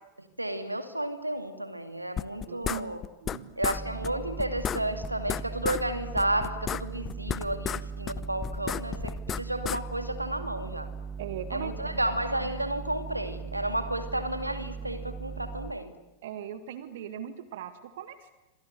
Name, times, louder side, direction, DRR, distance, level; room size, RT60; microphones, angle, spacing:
voice 1, 0.2-3.0 3.6-10.9 11.5-15.9, right 1 dB, 85° right, 9 dB, 2.4 m, -32 dB
sound 1, 2.2-3.4 3.6-4.1 4.4-5.8 6.2-7.8 8.1-9.8, left 9 dB, 25° left, 0.8 m, -32 dB
voice 2, 2.5-2.9 3.2-3.6 11.2-11.7 16.2-18.3, right 9 dB, 55° right, 11 dB, 1.7 m, -39 dB
sound 2, 3.7-15.7, right 5 dB, 10° right, 1.2 m, -39 dB
27.5 x 26.0 x 8.1 m, 1.1 s
figure-of-eight pair, 90°, 0 cm